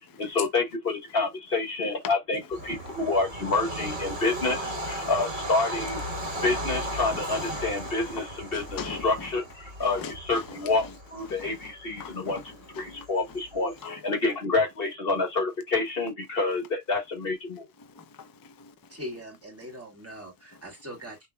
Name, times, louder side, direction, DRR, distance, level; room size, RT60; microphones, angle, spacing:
voice 1, 0.2-6.0 6.4-10.9 11.1-12.4 12.8-17.7, left 3 dB, 50° left, 1.6 m, -28 dB
Bird vocalization bird call bird song / Train, 2.5-13.7, right 1 dB, 55° right, 1.8 m, -36 dB
voice 2, 2.6-3.0 6.3-6.4 7.1-7.2 7.5-8.2 8.5-9.3 9.8-10.9 11.3-13.4 13.8-14.1 17.8-19.0, left 5 dB, 30° left, 0.4 m, -43 dB
voice 3, 18.9-21.3, equal, 10° right, 2.1 m, -41 dB
5.8 x 3.1 x 2.2 m
omnidirectional pair, 1.2 m